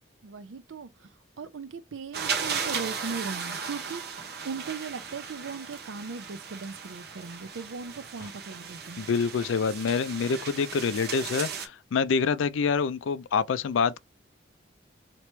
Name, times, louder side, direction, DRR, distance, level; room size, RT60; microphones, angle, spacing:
voice 1, 0.2-1.1 1.4-9.1, right 5 dB, 90° right, 0.5 m, -38 dB
sound 1, 2.1-11.7, right 6 dB, 55° right, 0.8 m, -36 dB
voice 2, 9.0-14.0, left 5 dB, 85° left, 0.4 m, -26 dB
3.0 x 2.9 x 3.2 m
head